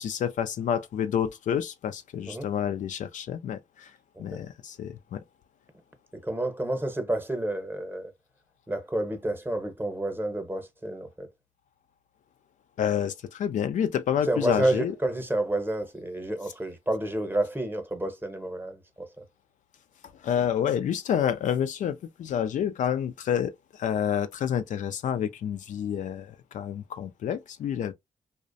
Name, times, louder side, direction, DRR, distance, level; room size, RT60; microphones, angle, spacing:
voice 1, 0.0-5.2 12.8-15.0 20.1-27.9, left 9 dB, 70° left, 0.4 m, -29 dB
voice 2, 6.2-8.1 8.7-11.3 14.3-19.2, right 1 dB, 15° right, 0.8 m, -30 dB
2.4 x 2.1 x 2.5 m
cardioid pair, 65°, 13 cm